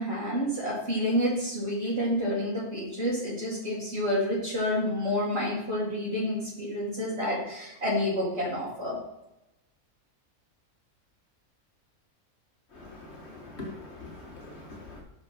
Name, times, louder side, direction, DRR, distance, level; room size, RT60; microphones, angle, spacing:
voice 1, 0.0-9.0, equal, 45° right, -9 dB, 2.6 m, -29 dB
voice 2, 12.7-15.0, left 2 dB, 45° left, 0 dB, 2.1 m, -43 dB
6.4 x 6.4 x 5.9 m, 0.90 s
omnidirectional pair, 1.5 m